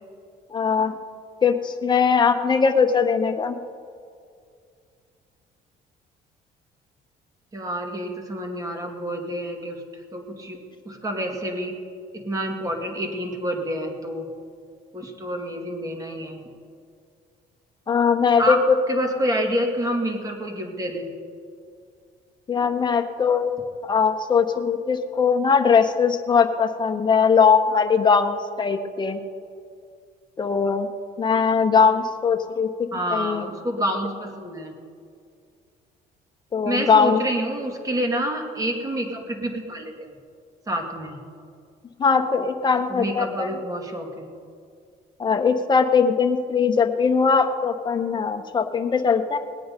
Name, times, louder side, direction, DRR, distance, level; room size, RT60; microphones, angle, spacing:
voice 1, 0.5-0.9 1.4-3.6 17.9-18.6 22.5-29.2 30.4-30.9 31.2-32.7 33.1-33.5 36.5-37.2 42.0-43.5 45.2-49.4, left 6 dB, 25° left, 5 dB, 1.1 m, -20 dB
voice 2, 7.5-10.6 10.9-11.7 12.1-14.3 14.9-16.4 18.4-18.6 18.9-21.1 32.9-34.7 36.7-39.9 40.7-41.2 42.9-44.3, equal, 20° right, 2 dB, 2.2 m, -28 dB
20.0 x 8.7 x 5.3 m, 2.3 s
cardioid pair, 110°, 17 cm